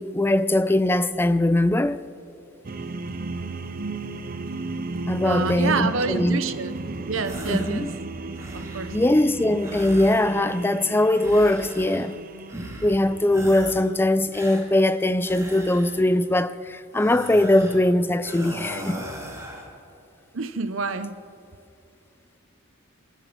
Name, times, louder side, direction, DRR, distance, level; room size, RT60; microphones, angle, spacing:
voice 1, 0.0-2.0 5.1-6.4 7.5-7.9 8.9-12.2 12.8-19.0, left 1 dB, 10° left, 0.4 m, -21 dB
sound 1, 2.6-13.7, right 3 dB, 45° right, 0.6 m, -35 dB
voice 2, 5.2-6.8 7.1-7.9 8.5-9.0 20.3-21.2, right 4 dB, 70° right, 0.8 m, -28 dB
sound 2, 7.2-7.8 8.2-9.0 9.6-10.7 11.1-12.2 12.5-13.0 13.3-13.9 14.3-16.2 16.9-17.9 18.2-19.7, right 1 dB, 15° right, 2.0 m, -39 dB
20.5 x 11.0 x 6.1 m
head